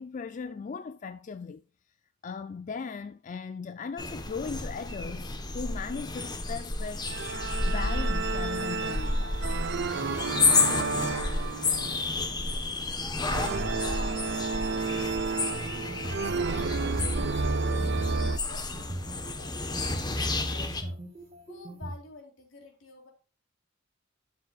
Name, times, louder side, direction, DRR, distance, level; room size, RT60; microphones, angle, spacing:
voice 1, 0.0-1.6 2.2-9.6, left 5 dB, 40° left, 0.4 m, -38 dB
sound 1, 4.0-20.8, left 3 dB, 20° left, 1.1 m, -31 dB
sound 2, 7.1-18.4, right 4 dB, 60° right, 0.7 m, -31 dB
voice 2, 10.0-12.9 13.4-15.6 16.0-18.2 18.5-21.0 21.5-23.1, left 2 dB, 80° left, 3.6 m, -51 dB
sound 3, 15.6-16.3 16.8-18.2 18.7-20.0 20.6-21.9, right 1 dB, 30° right, 1.7 m, -40 dB
11.5 x 7.3 x 2.4 m
head